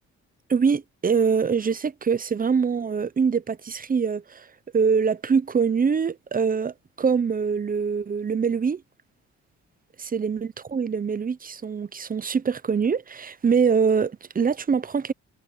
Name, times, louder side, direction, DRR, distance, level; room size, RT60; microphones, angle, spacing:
voice 1, 0.5-4.5 4.7-8.8 10.0-15.1, right 6 dB, 30° right, 0.8 m, -24 dB
cardioid pair, 90°, 30 cm